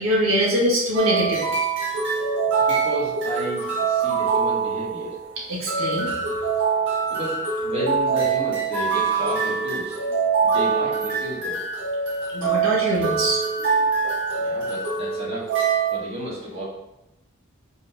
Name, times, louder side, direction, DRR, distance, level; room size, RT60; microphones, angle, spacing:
voice 1, 0.0-1.5 5.5-6.1 12.3-13.7, equal, 90° right, -4 dB, 1.9 m, -23 dB
sound 1, 0.9-16.0, right 5 dB, 60° right, 1.8 m, -24 dB
voice 2, 2.6-5.2 7.1-10.0 10.4-11.6 14.3-15.5 15.9-16.6, equal, 30° right, -6 dB, 1.9 m, -32 dB
5.7 x 3.7 x 5.0 m, 0.93 s
head